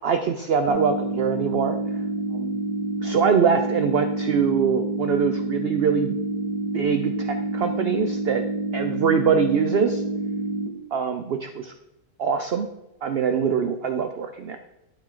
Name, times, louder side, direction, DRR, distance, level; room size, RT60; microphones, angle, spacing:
voice 1, 0.0-1.8 2.3-2.6 3.0-6.2 6.7-8.4 8.7-10.0 10.9-11.7 12.2-12.7 13.0-14.6, right 6 dB, 70° right, 7 dB, 0.5 m, -23 dB
sound 1, 0.7-10.7, right 2 dB, 90° right, 1.7 m, -28 dB
11.5 x 4.5 x 3.7 m, 0.96 s
omnidirectional pair, 1.6 m